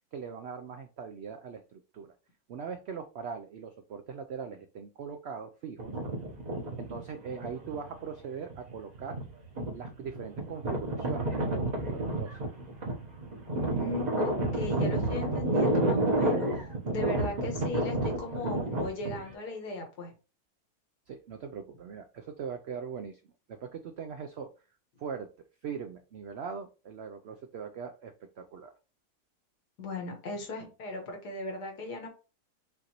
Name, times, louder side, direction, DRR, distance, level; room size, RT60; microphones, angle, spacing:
voice 1, 0.1-2.1 2.5-5.9 6.8-9.2 9.7-12.4 21.1-23.2 23.5-24.5 25.0-25.3 25.6-28.7, right 6 dB, 85° right, 6 dB, 0.5 m, -41 dB
sound 1, 5.8-7.9 8.5-19.3, right 1 dB, 35° right, 0.9 m, -30 dB
voice 2, 13.6-20.1 29.8-32.1, left 2 dB, 90° left, 2 dB, 1.9 m, -38 dB
5.8 x 2.6 x 2.9 m, 0.32 s
omnidirectional pair, 1.7 m